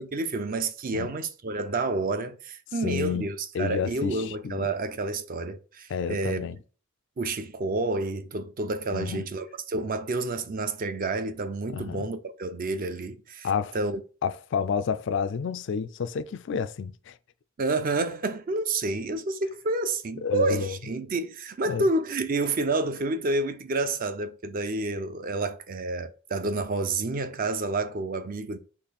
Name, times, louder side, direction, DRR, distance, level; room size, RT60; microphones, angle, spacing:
voice 1, 0.0-6.5 7.2-13.5 13.7-14.0 17.6-28.6, right 2 dB, 40° right, 0.4 m, -29 dB
voice 2, 2.8-3.3 3.5-4.7 5.9-6.6 8.9-9.2 11.7-12.1 13.4-13.8 14.2-17.1 20.2-20.8 21.7-21.8, left 6 dB, 55° left, 0.3 m, -30 dB
4.1 x 3.1 x 4.1 m
head